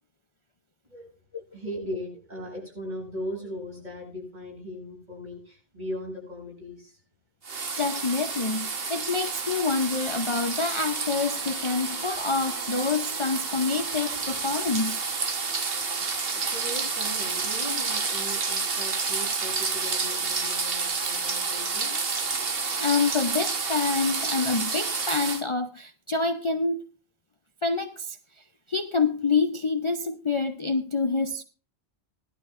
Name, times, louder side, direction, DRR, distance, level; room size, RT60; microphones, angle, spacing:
voice 1, 1.5-7.0 16.3-21.9, left 1 dB, 45° right, 7.7 m, -38 dB
sound 1, 7.4-25.4, right 4 dB, 65° right, 1.5 m, -29 dB
voice 2, 7.8-15.0 22.8-26.9 27.6-28.2 28.7-31.4, left 4 dB, 35° left, 0.6 m, -27 dB
19.0 x 12.0 x 2.5 m
omnidirectional pair, 1.1 m